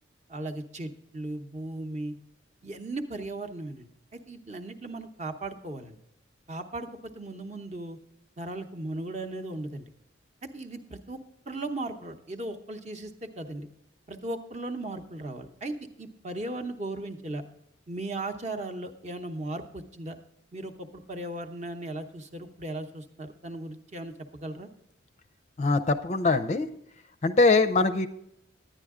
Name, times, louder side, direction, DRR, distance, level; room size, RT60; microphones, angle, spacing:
voice 1, 0.3-2.1 2.6-6.0 6.5-8.0 8.4-9.9 10.4-11.2 11.5-13.7 14.1-17.4 17.9-20.2 20.5-24.7, right 2 dB, 35° right, 6 dB, 0.8 m, -37 dB
voice 2, 25.6-26.7 27.2-28.1, left 3 dB, 35° left, 9 dB, 0.4 m, -22 dB
10.5 x 10.0 x 3.6 m, 0.77 s
head